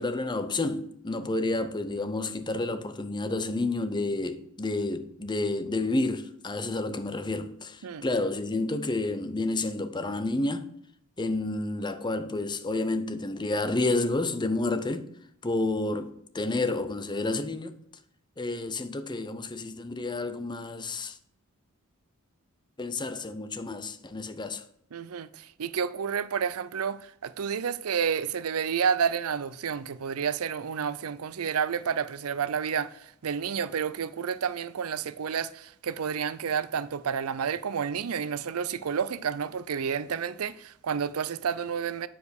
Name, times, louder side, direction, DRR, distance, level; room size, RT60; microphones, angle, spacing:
voice 1, 0.0-10.7 11.2-15.1 15.4-17.7 18.4-21.2 22.8-24.6, left 2 dB, 20° left, 0.6 m, -30 dB
voice 2, 24.9-32.9 33.2-42.1, right 7 dB, 90° right, 0.5 m, -30 dB
9.2 x 5.1 x 6.5 m
head